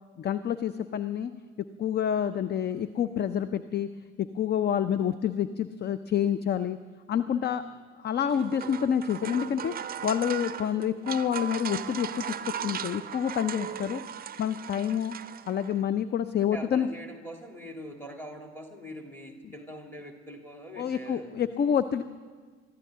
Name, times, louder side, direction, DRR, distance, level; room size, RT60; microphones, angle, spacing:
voice 1, 0.2-1.3 1.8-3.9 4.2-6.8 7.1-7.6 8.0-9.7 10.0-15.1 15.5-16.9 20.8-22.0, left 9 dB, 30° left, 13 dB, 0.6 m, -28 dB
Water Into Pail, 8.2-15.8, right 9 dB, 25° right, 0.7 m, -38 dB
voice 2, 16.4-21.8, equal, 5° left, 2 dB, 3.1 m, -43 dB
24.0 x 14.0 x 3.8 m, 1.5 s
figure-of-eight pair, 60°, 34 cm